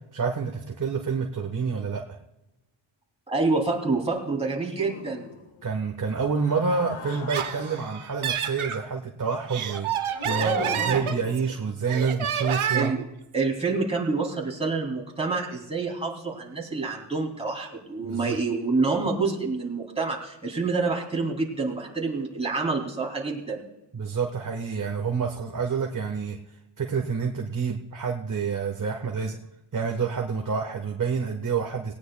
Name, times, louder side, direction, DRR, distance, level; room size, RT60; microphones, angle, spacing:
voice 1, 0.1-2.0 5.6-12.9 18.0-18.4 23.9-26.4 26.8-29.4 29.7-31.9, right 5 dB, 40° right, 1 dB, 1.3 m, -28 dB
voice 2, 3.3-5.3 10.3-10.9 12.7-13.0 13.3-23.6, right 3 dB, 10° right, -3 dB, 2.9 m, -27 dB
sound 1, 4.8-5.6 6.3-8.1 10.1-11.6, left 2 dB, 75° left, 1.8 m, -36 dB
Laughter, 7.1-8.8 9.3-11.5 11.9-13.0, right 8 dB, 75° right, 1.1 m, -29 dB
18.5 x 17.0 x 2.3 m, 0.96 s
wide cardioid pair, 115°, 50 cm